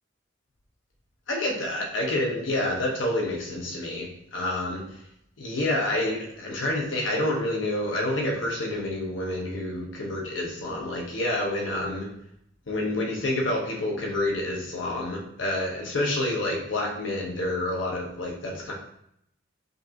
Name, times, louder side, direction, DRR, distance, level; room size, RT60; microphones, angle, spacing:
voice 1, 1.3-4.8 5.4-12.1 12.7-18.7, left 1 dB, 80° left, -1 dB, 0.8 m, -28 dB
5.2 x 2.8 x 2.5 m, 0.74 s
head